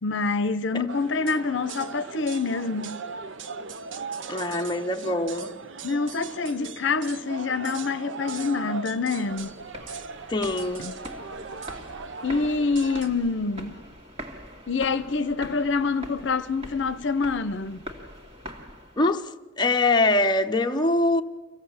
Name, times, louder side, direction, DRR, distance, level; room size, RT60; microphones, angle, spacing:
voice 1, 0.0-3.0 5.8-9.5 10.8-10.9 12.2-13.8 14.7-17.8, left 4 dB, 70° left, 0.7 m, -26 dB
sound 1, 0.9-13.1, right 5 dB, 70° right, 0.8 m, -38 dB
voice 2, 4.3-5.5 10.3-10.9 19.0-19.3 19.6-21.2, left 2 dB, 25° left, 0.8 m, -23 dB
sound 2, 9.2-19.2, equal, 30° right, 2.2 m, -43 dB
25.0 x 16.5 x 7.2 m
head